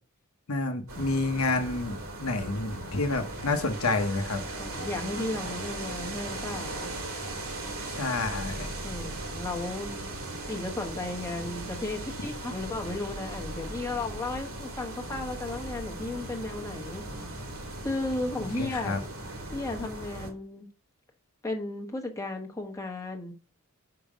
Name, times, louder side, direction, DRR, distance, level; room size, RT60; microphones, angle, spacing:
voice 1, 0.5-4.4 7.8-8.7 18.6-19.0, left 3 dB, 80° left, 1.1 m, -29 dB
sound 1, 0.9-20.3, right 2 dB, 80° right, 2.2 m, -38 dB
voice 2, 4.6-6.9 8.8-10.1 10.5-17.0 17.8-19.0 19.5-20.7 21.4-23.3, left 2 dB, 15° left, 1.3 m, -34 dB
5.9 x 5.5 x 5.1 m
head